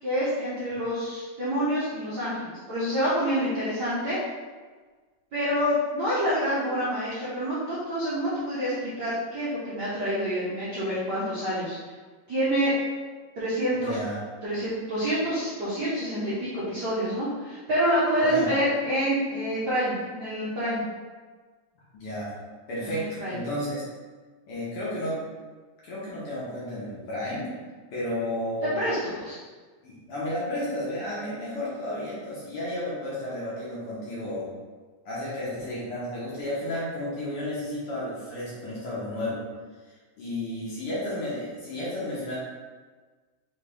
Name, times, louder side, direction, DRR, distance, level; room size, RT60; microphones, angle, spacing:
voice 1, 0.0-4.2 5.3-11.7 12.3-12.8 13.4-13.9 14.4-20.9 22.9-23.4 28.6-29.0 29.2-29.3, equal, 80° right, -10 dB, 0.9 m, -27 dB
voice 2, 13.7-14.2 18.2-18.5 21.9-22.3 22.7-23.8 24.5-25.2 25.8-27.5 27.9-28.7 29.8-34.5 35.0-39.4 39.8-42.4, left 1 dB, 60° left, -8 dB, 1.6 m, -32 dB
4.9 x 3.2 x 3.4 m, 1.4 s
omnidirectional pair, 3.5 m